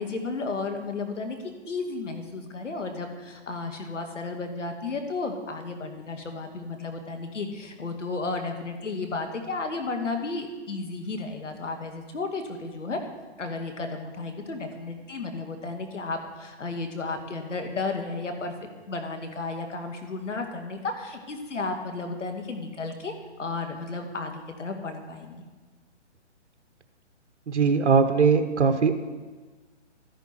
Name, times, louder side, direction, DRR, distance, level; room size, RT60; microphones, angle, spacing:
voice 1, 0.0-1.4 1.7-13.0 13.4-23.1 23.4-25.5, left 3 dB, 80° left, 5 dB, 2.1 m, -33 dB
voice 2, 27.5-28.9, right 5 dB, 70° right, 7 dB, 1.1 m, -20 dB
13.0 x 10.5 x 4.5 m, 1.3 s
hypercardioid pair, 150°, 36 cm